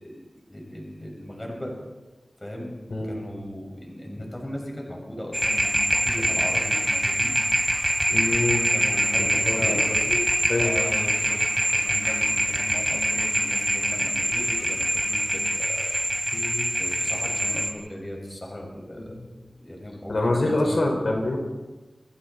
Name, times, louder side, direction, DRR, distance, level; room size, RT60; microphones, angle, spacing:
voice 1, 0.0-1.7 2.4-2.7 3.0-7.3 8.7-9.9 10.5-11.4 11.7-15.9 16.8-19.1 19.6-20.8, left 1 dB, 25° left, 0 dB, 6.6 m, -37 dB
sound 1, 5.3-17.7, right 1 dB, 10° right, 3.0 m, -24 dB
voice 2, 8.1-8.7 9.1-10.7 16.3-16.7 19.2-19.3 20.1-21.4, left 2 dB, 70° left, 1 dB, 5.4 m, -26 dB
29.0 x 22.0 x 4.5 m, 1.2 s
wide cardioid pair, 80°, 0 cm